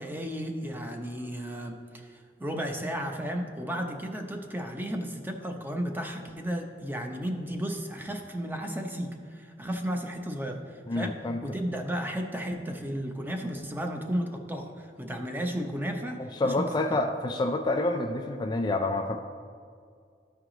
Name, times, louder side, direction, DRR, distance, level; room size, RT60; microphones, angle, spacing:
voice 1, 0.0-2.1 2.4-10.6 10.9-17.0, equal, 10° right, 3 dB, 0.7 m, -34 dB
voice 2, 10.9-11.4 16.3-19.2, left 2 dB, 25° left, 4 dB, 0.3 m, -28 dB
13.5 x 4.6 x 3.8 m, 2.2 s
head